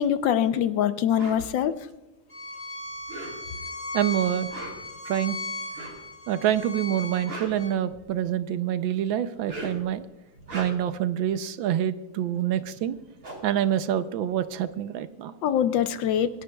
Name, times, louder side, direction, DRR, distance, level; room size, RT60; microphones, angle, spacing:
voice 1, 0.0-1.7 15.4-16.3, left 9 dB, 70° left, 11 dB, 1.3 m, -23 dB
sound 1, 1.1-1.4 2.9-3.7 4.4-5.0 5.7-6.1 7.0-8.3 9.3-9.9 10.3-11.0 12.6-12.7 12.9-14.6, right 1 dB, 50° right, 3.5 m, -40 dB
Bowed string instrument, 2.3-7.7, left 2 dB, 20° left, 5.3 m, -37 dB
voice 2, 3.9-4.5 5.1-5.4 6.3-10.0 10.5-13.0 13.4-15.3, right 10 dB, 75° right, 12 dB, 1.4 m, -26 dB
25.5 x 11.5 x 2.3 m, 1.1 s
omnidirectional pair, 2.3 m